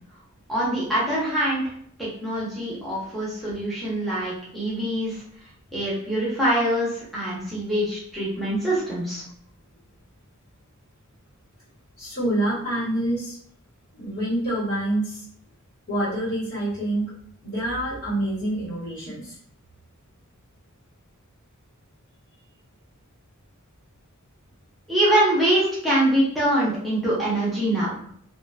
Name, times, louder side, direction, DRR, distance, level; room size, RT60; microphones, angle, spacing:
voice 1, 0.5-1.6 2.0-5.2 5.7-9.2 24.9-27.9, right 1 dB, ahead, -9 dB, 0.8 m, -24 dB
voice 2, 12.0-13.4 13.9-15.2 15.9-17.1 17.4-19.4, right 1 dB, 75° left, -11 dB, 1.4 m, -26 dB
2.7 x 2.4 x 2.3 m, 0.64 s
head